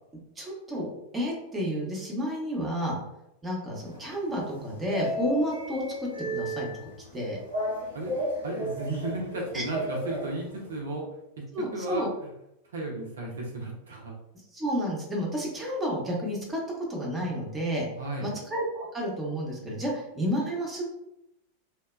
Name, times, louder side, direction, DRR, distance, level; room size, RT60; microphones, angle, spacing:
voice 1, 0.4-0.9 1.1-3.0 3.4-7.4 9.5-9.6 11.5-12.1 14.5-17.9 18.2-20.9, equal, 15° right, -2 dB, 0.7 m, -31 dB
sound 1, 3.8-10.8, equal, 90° left, 1.0 m, -35 dB
voice 2, 8.4-11.1 11.4-12.3 12.6-14.2 18.0-18.4, right 2 dB, 65° right, -1 dB, 0.5 m, -34 dB
2.8 x 2.1 x 2.2 m, 0.84 s
figure-of-eight pair, 90°, 0 cm